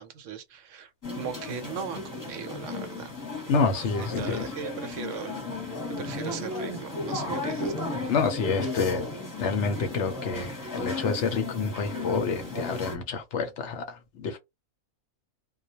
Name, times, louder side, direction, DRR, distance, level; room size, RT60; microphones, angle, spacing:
voice 1, 0.0-3.1 4.0-7.9, right 7 dB, 70° right, 0.9 m, -39 dB
sound 1, 1.0-13.0, left 2 dB, 15° left, 0.8 m, -35 dB
voice 2, 3.5-4.5 7.9-9.1 9.4-14.4, left 5 dB, 65° left, 0.8 m, -28 dB
2.2 x 2.1 x 2.7 m
omnidirectional pair, 1.4 m